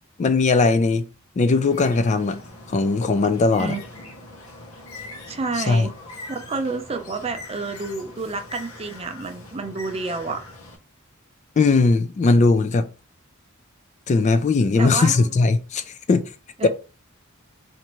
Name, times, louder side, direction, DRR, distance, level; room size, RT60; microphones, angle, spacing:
voice 1, 0.2-1.0 1.4-2.4 2.7-3.8 5.6-5.9 11.6-12.9 14.1-16.2 16.6-16.7, left 3 dB, 35° left, 0.3 m, -19 dB
Bird, 1.7-10.8, left 2 dB, 85° left, 0.9 m, -41 dB
voice 2, 5.3-5.9 6.3-10.4 14.8-15.3 16.6-16.7, right 3 dB, 30° right, 0.5 m, -29 dB
4.3 x 2.6 x 3.0 m
head